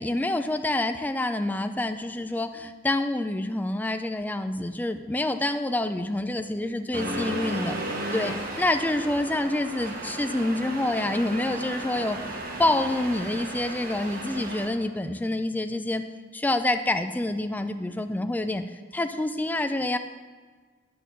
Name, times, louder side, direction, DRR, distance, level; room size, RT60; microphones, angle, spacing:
voice 1, 0.0-7.8 8.1-12.2 12.6-16.0 16.3-18.6 18.9-20.0, left 1 dB, 10° left, 8 dB, 0.3 m, -27 dB
Accelerating revving vroom, 6.9-14.7, right 1 dB, 45° right, 1.1 m, -34 dB
10.5 x 3.7 x 7.0 m, 1.5 s
head